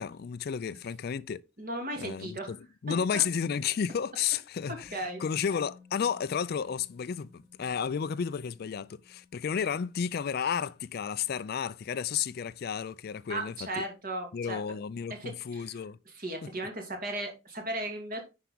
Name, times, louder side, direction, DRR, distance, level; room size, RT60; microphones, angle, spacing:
voice 1, 0.0-1.4 2.0-13.8 14.3-16.0 16.4-16.5, left 7 dB, 50° left, 0.4 m, -32 dB
voice 2, 1.6-2.5 3.1-3.2 4.7-5.2 13.3-14.6 15.2-15.8 16.1-18.2, right 1 dB, 45° right, 2.7 m, -36 dB
Musical instrument, 4.8-12.7 13.0-13.2, left 4 dB, 20° right, 5.1 m, -58 dB
10.0 x 4.7 x 3.8 m
head